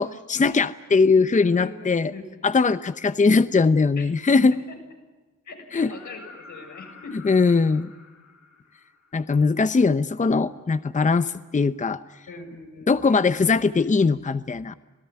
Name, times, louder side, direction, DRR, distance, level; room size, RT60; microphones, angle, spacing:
voice 1, 0.0-2.1 2.4-4.5 5.7-5.9 7.2-7.9 9.1-12.0 12.9-14.7, left 4 dB, 25° left, 14 dB, 0.8 m, -20 dB
voice 2, 1.1-2.2 4.0-4.1 4.5-4.8 5.4-7.3 12.3-13.0, left 4 dB, 80° left, 2 dB, 7.1 m, -41 dB
sound 1, 5.8-9.6 11.5-11.6, left 3 dB, 55° left, 4.8 m, -48 dB
27.0 x 17.5 x 9.7 m, 1.2 s
cardioid pair, 80°, 30 cm